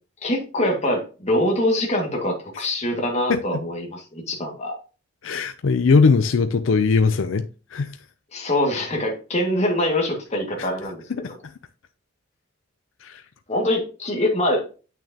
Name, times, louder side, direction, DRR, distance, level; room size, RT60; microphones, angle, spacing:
voice 1, 0.2-4.8 8.3-11.0 13.5-14.6, left 1 dB, 35° left, 1.9 m, -24 dB
voice 2, 5.2-7.4 7.7-7.9 10.6-10.7 11.2-11.5 13.0-13.2, left 4 dB, 80° left, 0.5 m, -20 dB
8.5 x 6.2 x 2.8 m
head